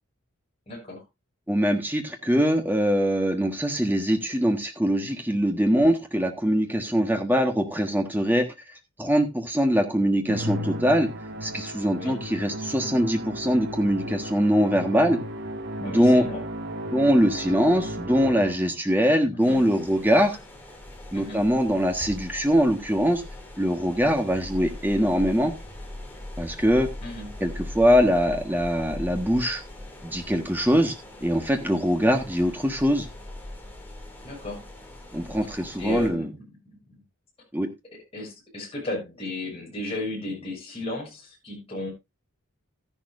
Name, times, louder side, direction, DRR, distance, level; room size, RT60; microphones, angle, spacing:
voice 1, 0.7-1.0 11.9-12.2 15.8-16.5 19.3-19.7 21.1-21.5 27.0-27.3 34.2-34.6 35.8-36.8 38.1-41.9, left 2 dB, 25° left, -4 dB, 6.8 m, -34 dB
voice 2, 1.5-8.4 9.0-11.1 11.4-15.2 15.8-16.2 16.9-20.4 21.1-23.2 23.6-25.5 26.4-26.9 27.4-29.6 30.0-30.9 31.2-33.1 35.1-36.3 37.5-37.7, equal, 10° right, 4 dB, 1.4 m, -22 dB
Musical instrument, 10.3-18.8, equal, 50° right, 1.3 m, -34 dB
sound 1, 19.4-36.1, left 1 dB, 10° left, 2.6 m, -41 dB
13.0 x 11.0 x 2.6 m, 0.23 s
head